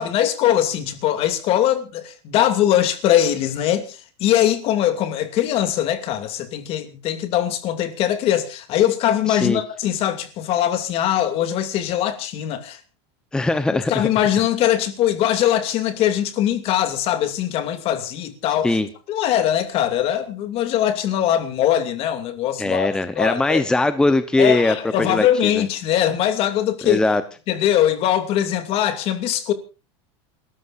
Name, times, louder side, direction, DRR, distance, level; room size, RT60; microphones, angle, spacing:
voice 1, 0.0-12.8 13.7-18.8 19.1-22.9 23.2-23.6 24.4-27.0 27.5-29.5, left 11 dB, 40° left, 2.7 m, -21 dB
voice 2, 9.3-9.6 13.3-14.1 18.6-18.9 22.6-25.6 26.8-27.2, left 2 dB, 5° left, 0.9 m, -20 dB
27.5 x 14.0 x 2.6 m
supercardioid pair, 155°, 15 cm